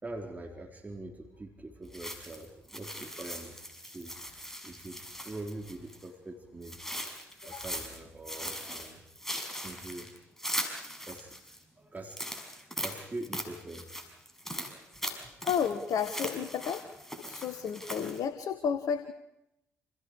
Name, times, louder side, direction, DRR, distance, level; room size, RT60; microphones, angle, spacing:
voice 1, 0.0-3.6 3.8-4.2 4.6-6.8 7.4-9.0 9.5-10.1 11.0-11.4 11.8-12.3 12.8-13.9 14.4-14.6 15.2-15.3, right 2 dB, 25° right, 1 dB, 4.1 m, -43 dB
sound 1, 1.9-6.1 6.6-8.0 8.2-11.6 12.0-18.2, equal, 5° left, 6.4 m, -40 dB
voice 2, 15.4-16.8 17.3-19.1, left 7 dB, 55° left, 10 dB, 1.5 m, -32 dB
29.5 x 28.0 x 4.9 m, 0.84 s
figure-of-eight pair, 45°, 7 cm